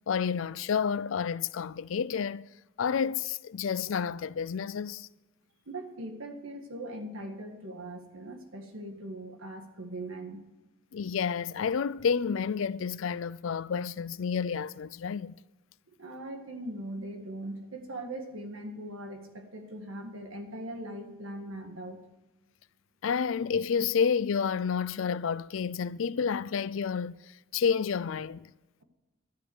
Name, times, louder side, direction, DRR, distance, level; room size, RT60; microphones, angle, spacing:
voice 1, 0.1-2.5 2.8-5.1 10.9-15.4 23.0-27.1 27.5-28.5, left 6 dB, 70° left, 0.4 m, -30 dB
voice 2, 5.7-10.4 16.0-22.0, right 1 dB, 75° right, 1.8 m, -40 dB
12.0 x 7.9 x 7.9 m
head